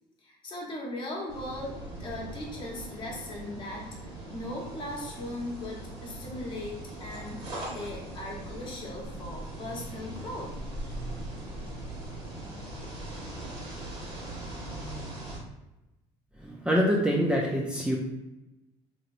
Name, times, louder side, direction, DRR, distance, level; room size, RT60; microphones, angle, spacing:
voice 1, 0.2-4.0 4.3-7.4 7.7-10.5, left 1 dB, 35° left, -2 dB, 1.0 m, -38 dB
sound 1, 1.3-15.4, right 1 dB, 45° right, 1.5 m, -40 dB
voice 2, 16.4-18.0, equal, 5° right, -2 dB, 0.4 m, -25 dB
2.9 x 2.8 x 2.5 m, 0.97 s
supercardioid pair, 105°, 13 cm